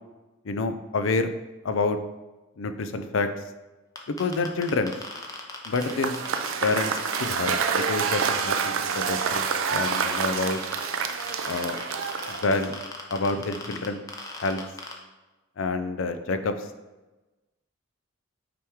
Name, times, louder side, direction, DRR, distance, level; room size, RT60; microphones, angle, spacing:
voice 1, 0.4-1.3 1.6-2.0 2.6-3.3 4.1-4.9 5.6-6.2 6.6-10.6 11.4-11.9 12.3-12.8 13.1-14.0 14.3-14.6 15.6-16.7, left 3 dB, 75° left, 9 dB, 0.5 m, -28 dB
sound 1, 4.0-8.5 8.9-9.5 9.9-14.9, left 3 dB, 15° left, 0.7 m, -37 dB
Cheering / Applause / Crowd, 5.7-12.8, right 6 dB, 90° right, 0.5 m, -28 dB
5.9 x 4.7 x 3.5 m, 1.1 s
head